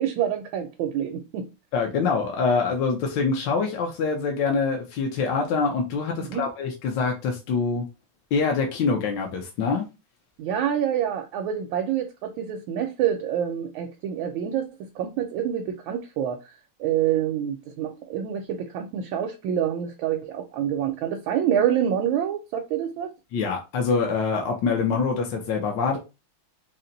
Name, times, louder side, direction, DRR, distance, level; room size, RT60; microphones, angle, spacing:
voice 1, 0.0-1.5 6.2-6.4 10.4-14.6 15.0-16.4 16.8-23.1, right 9 dB, 80° right, 1.4 m, -27 dB
voice 2, 1.7-7.8 8.3-9.9 23.3-26.0, left 4 dB, 70° left, 1.3 m, -25 dB
4.2 x 2.2 x 3.8 m
omnidirectional pair, 2.2 m